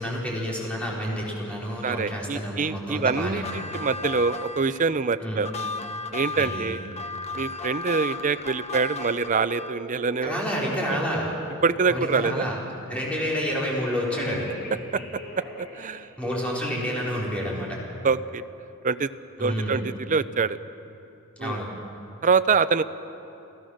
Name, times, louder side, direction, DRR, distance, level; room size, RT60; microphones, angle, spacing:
voice 1, 0.0-3.6 5.2-5.4 6.3-6.8 10.2-11.3 11.9-12.6 12.9-14.5 16.2-17.8 19.4-19.8 21.4-21.7, equal, 5° left, -5 dB, 4.5 m, -29 dB
voice 2, 1.8-5.5 6.1-6.8 7.3-10.4 11.6-12.5 14.9-15.0 15.6-16.1 18.0-18.4 18.8-19.1 19.4-20.6 21.4-21.6 22.2-22.8, right 5 dB, 35° right, 13 dB, 0.5 m, -25 dB
sound 1, 3.3-9.9, left 3 dB, 30° left, 0.9 m, -35 dB
sound 2, 9.2-11.3 13.5-15.9 16.2-16.5, right 1 dB, 45° left, 6.2 m, -40 dB
29.5 x 15.0 x 6.5 m, 2.8 s
head